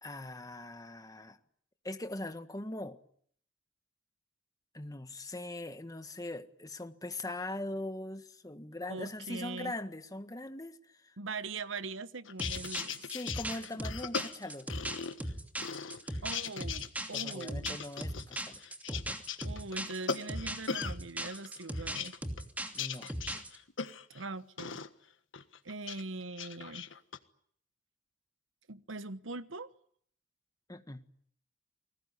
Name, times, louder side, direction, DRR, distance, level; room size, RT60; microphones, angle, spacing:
voice 1, 0.0-1.4 1.8-3.0 4.7-11.2 13.1-14.7 17.1-18.6 18.9-19.2 22.7-23.1 30.7-31.0, left 1 dB, 20° left, 1.6 m, -41 dB
voice 2, 8.9-9.7 11.2-13.0 16.2-17.8 19.4-22.2 24.1-24.8 25.6-26.9 28.7-29.7, right 3 dB, 85° right, 1.2 m, -41 dB
sound 1, 12.3-15.3 15.6-16.9 17.1-21.0 21.3-24.2 24.6-24.9 25.3-26.0 26.3-27.2, left 6 dB, 75° left, 1.5 m, -39 dB
sound 2, 12.4-23.6, right 1 dB, 10° right, 2.8 m, -38 dB
29.0 x 20.5 x 9.8 m
head